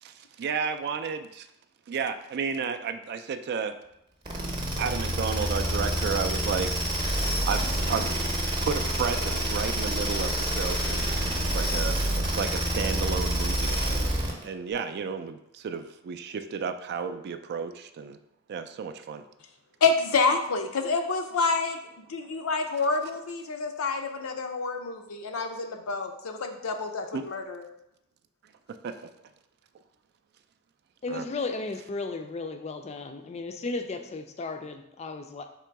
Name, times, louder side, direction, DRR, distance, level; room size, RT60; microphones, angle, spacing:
voice 1, 0.0-1.5 1.9-3.7 4.8-6.8 7.4-8.3 8.6-18.2 18.5-19.2 22.2-22.3 27.1-27.2 28.4-29.1 31.1-31.3, right 6 dB, 50° right, 9 dB, 0.3 m, -32 dB
sound 1, 4.3-14.4, right 1 dB, 20° right, 0.7 m, -27 dB
voice 2, 19.8-21.8 22.1-27.6, left 4 dB, 80° left, 5 dB, 0.5 m, -28 dB
voice 3, 31.0-35.4, left 3 dB, 30° left, 6 dB, 0.4 m, -34 dB
3.7 x 3.0 x 4.5 m, 0.84 s
head